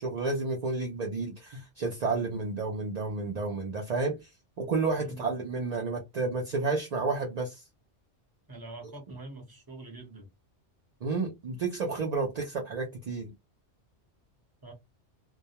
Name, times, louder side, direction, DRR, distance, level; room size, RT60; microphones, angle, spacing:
voice 1, 0.0-4.3 4.6-7.6 11.0-13.3, right 3 dB, 50° right, 0.5 m, -31 dB
voice 2, 5.0-5.3 8.5-10.3 14.6-14.7, right 2 dB, 20° right, 0.9 m, -45 dB
2.3 x 2.1 x 2.8 m
omnidirectional pair, 1.2 m